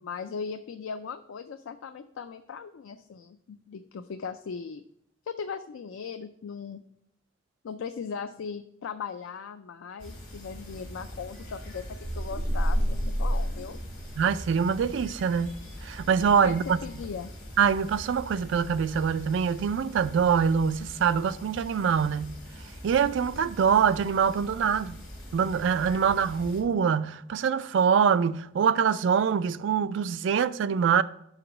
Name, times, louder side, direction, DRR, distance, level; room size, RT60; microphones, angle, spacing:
voice 1, 0.0-4.8 5.2-6.8 7.6-13.8 16.4-17.3, left 6 dB, 75° left, 0.4 m, -38 dB
sound 1, 10.0-26.6, equal, 45° left, 2.8 m, -43 dB
sound 2, 12.0-14.4, equal, 15° right, 0.7 m, -28 dB
voice 2, 14.2-15.6 15.8-16.8 17.6-22.4 22.8-25.0 25.3-31.0, right 7 dB, 65° right, 0.3 m, -24 dB
5.9 x 4.9 x 6.1 m
head